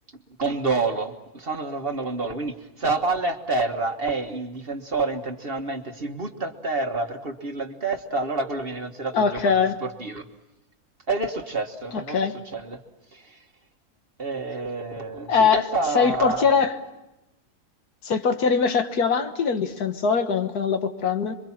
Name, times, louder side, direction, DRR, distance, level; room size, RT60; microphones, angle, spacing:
voice 1, 0.4-9.5 9.8-10.3 11.1-12.2 12.5-12.8 13.1-13.4 14.2-16.4, right 3 dB, 40° right, 4 dB, 1.6 m, -28 dB
voice 2, 9.1-9.8 11.9-12.3 15.3-15.6 15.9-16.7 18.0-21.3, left 5 dB, 75° left, 7 dB, 1.8 m, -22 dB
27.0 x 23.5 x 7.3 m, 0.95 s
omnidirectional pair, 1.7 m